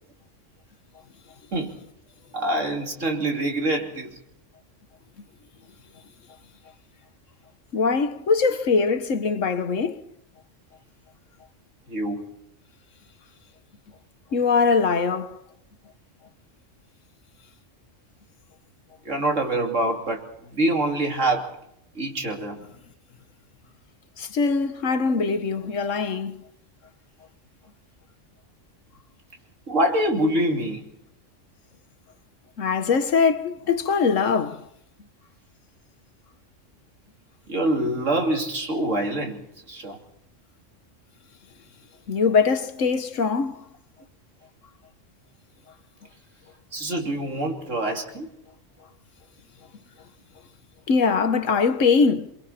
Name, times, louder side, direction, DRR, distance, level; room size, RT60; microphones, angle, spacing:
voice 1, 2.3-4.2 11.9-12.2 19.0-20.3 20.5-21.5 21.9-22.6 25.1-25.3 29.7-30.9 37.5-39.4 39.7-40.0 46.7-48.3 51.6-51.7, right 1 dB, 75° right, 3.4 m, -25 dB
voice 2, 7.7-10.0 14.3-15.4 24.2-26.4 32.6-34.6 42.1-43.6 50.9-52.3, left 5 dB, 80° left, 1.6 m, -22 dB
28.5 x 22.5 x 4.4 m
omnidirectional pair, 1.3 m